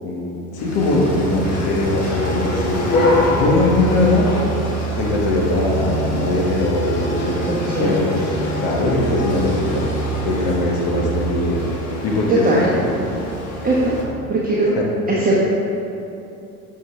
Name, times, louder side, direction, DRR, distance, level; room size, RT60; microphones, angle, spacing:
voice 1, 0.0-2.7 3.3-4.3 5.0-8.3 8.6-9.8 10.2-11.6 12.0-12.7 14.6-14.8, left 2 dB, 55° left, -1 dB, 1.5 m, -21 dB
sound 1, 0.6-14.0, equal, 35° left, 1.5 m, -24 dB
voice 2, 7.4-8.0 12.4-12.6 13.6-14.0 14.3-14.8 15.1-15.4, right 2 dB, 20° right, -6 dB, 1.0 m, -19 dB
7.0 x 5.4 x 3.3 m, 2.9 s
hypercardioid pair, 70°, 43 cm